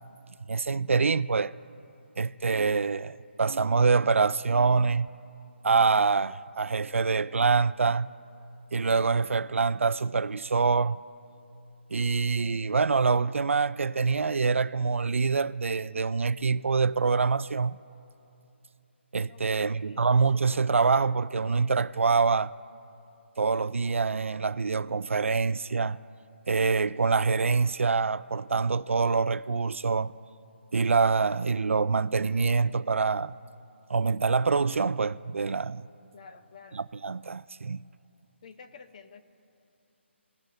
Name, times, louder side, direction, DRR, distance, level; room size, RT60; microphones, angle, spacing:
voice 1, 0.5-1.5 2.2-5.1 5.6-8.1 8.7-11.0 11.9-17.8 19.1-22.5 23.4-26.0 26.5-30.1 30.7-33.3 33.9-35.8 36.7-37.8, right 4 dB, 90° right, 0.3 m, -25 dB
voice 2, 19.3-20.1 36.1-36.9 38.4-39.2, left 5 dB, 35° left, 0.7 m, -50 dB
17.5 x 6.4 x 2.6 m
hypercardioid pair, 160°, 7 cm